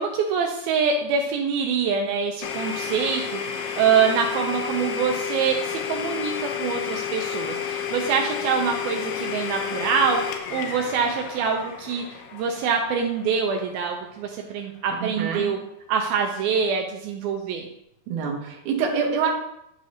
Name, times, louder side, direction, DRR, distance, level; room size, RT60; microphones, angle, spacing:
voice 1, 0.0-15.6 15.9-17.7, right 6 dB, 85° right, 2 dB, 2.2 m, -25 dB
Domestic sounds home sounds, 2.4-14.1, left 7 dB, 85° left, 2.8 m, -31 dB
voice 2, 15.0-15.5 18.1-19.3, right 6 dB, 70° right, 0 dB, 2.1 m, -26 dB
10.5 x 4.9 x 2.8 m, 0.80 s
omnidirectional pair, 4.8 m